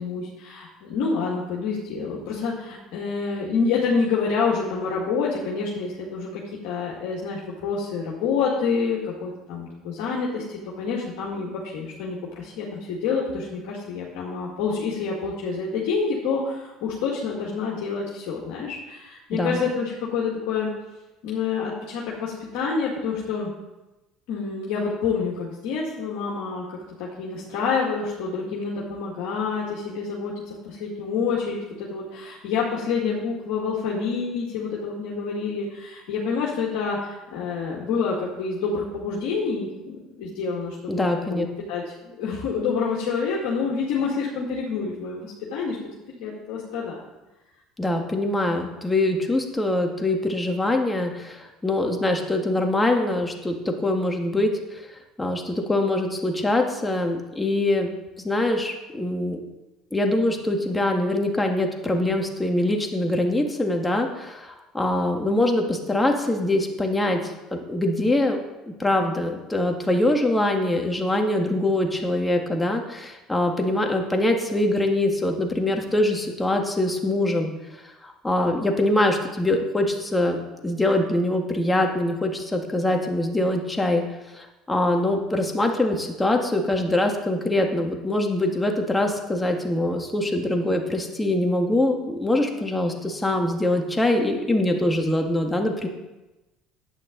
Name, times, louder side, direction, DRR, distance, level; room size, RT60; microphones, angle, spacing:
voice 1, 0.0-20.7 21.2-23.5 24.3-26.6 27.0-40.9 41.3-45.8 46.1-47.0, left 5 dB, 70° left, -5 dB, 2.1 m, -28 dB
voice 2, 19.3-19.6 40.9-41.5 47.8-54.8 55.2-57.9 58.2-59.4 59.9-68.4 68.8-77.5 78.0-84.0 84.3-95.9, left 1 dB, 15° left, 3 dB, 1.9 m, -23 dB
10.5 x 8.9 x 4.0 m, 1.0 s
hypercardioid pair, 70°, 0 cm